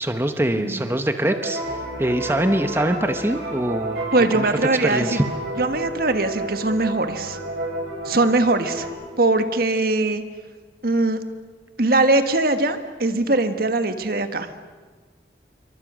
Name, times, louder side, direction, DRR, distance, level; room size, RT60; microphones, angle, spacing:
voice 1, 0.0-1.6 2.0-4.0 4.3-4.5 4.8-5.3, right 1 dB, 15° right, 7 dB, 1.0 m, -23 dB
sound 1, 1.3-8.9, right 1 dB, 85° right, 6.1 m, -31 dB
voice 2, 4.1-5.2 5.6-7.4 8.0-8.9 9.2-10.2 10.8-11.2 11.8-14.5, right 2 dB, 55° right, 9 dB, 1.6 m, -21 dB
27.5 x 23.5 x 6.3 m, 1.4 s
head